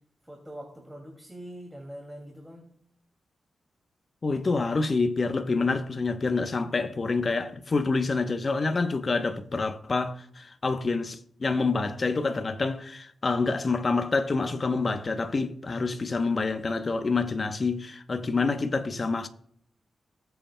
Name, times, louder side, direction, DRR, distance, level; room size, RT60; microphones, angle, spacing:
voice 1, 0.2-2.7, equal, 10° right, 2.3 m, -43 dB
voice 2, 4.2-19.3, left 3 dB, 40° left, 0.8 m, -27 dB
19.0 x 7.9 x 2.2 m
cardioid pair, 80°, 0 cm